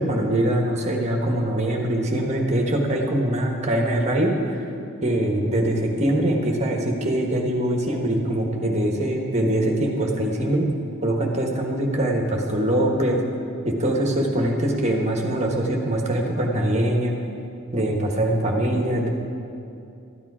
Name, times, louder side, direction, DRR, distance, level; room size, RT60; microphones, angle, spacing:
voice 1, 0.0-4.6 5.0-10.7 11.0-13.2 13.6-17.1 17.7-19.1, right 1 dB, 30° right, 1 dB, 1.3 m, -23 dB
12.5 x 10.5 x 4.9 m, 2.7 s
head